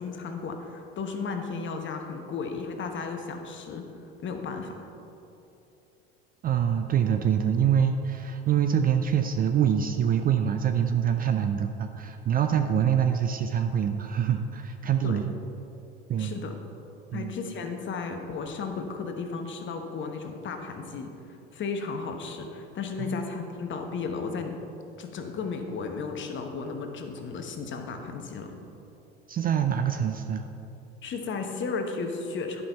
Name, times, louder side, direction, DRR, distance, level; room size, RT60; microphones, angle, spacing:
voice 1, 0.0-3.9 4.2-4.9 15.0-15.3 16.2-16.5 17.1-21.1 21.5-24.5 25.0-28.5 31.0-32.6, left 4 dB, 35° left, 5 dB, 1.1 m, -34 dB
voice 2, 6.4-15.3 16.1-16.4 17.1-17.4 23.0-23.1 29.3-30.5, right 8 dB, 25° right, 7 dB, 0.4 m, -25 dB
11.0 x 5.5 x 4.5 m, 2.9 s
hypercardioid pair, 75°, 33 cm